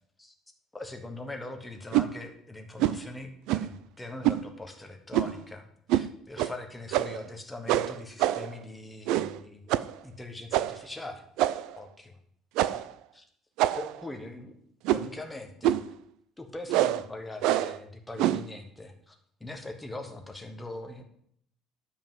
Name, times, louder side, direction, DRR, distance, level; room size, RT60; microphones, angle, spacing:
voice 1, 0.7-9.8 10.0-11.2 11.8-12.1 12.7-12.8 13.1-13.2 13.8-14.6 14.9-15.8 16.4-21.0, left 2 dB, 5° left, 4 dB, 1.2 m, -41 dB
sound 1, 1.9-2.1 2.8-3.0 3.5-3.8 4.2-4.4 5.1-5.4 5.9-6.1 6.4-6.5 6.9-7.3 7.7-8.6 9.1-9.4 9.7-9.9 10.5-10.8 11.4-11.8 12.6-12.9 13.6-14.0 14.8-15.2 15.6-15.9 16.7-17.0 17.4-17.8 18.2-18.5, right 13 dB, 70° right, 0.5 m, -26 dB
12.0 x 5.5 x 7.4 m, 0.70 s
cardioid pair, 175°, 0 cm